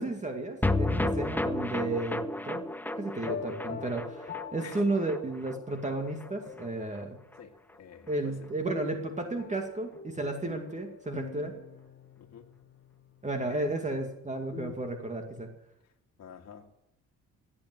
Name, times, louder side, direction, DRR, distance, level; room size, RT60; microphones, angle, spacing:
voice 1, 0.0-2.6 3.0-7.2 8.1-11.5 13.2-15.5, right 2 dB, 25° right, 4 dB, 2.2 m, -33 dB
sound 1, 0.6-7.1 7.3-7.4 7.7-7.8, left 2 dB, 5° left, 0.7 m, -33 dB
sound 2, 3.2-5.6 6.1-7.1 8.7-14.8, left 6 dB, 35° left, 1.4 m, -45 dB
voice 2, 7.8-8.5 12.2-12.5 13.5-13.7 16.2-16.7, left 8 dB, 60° left, 3 dB, 1.9 m, -47 dB
16.5 x 8.8 x 7.8 m, 0.87 s
cardioid pair, 90°, 30 cm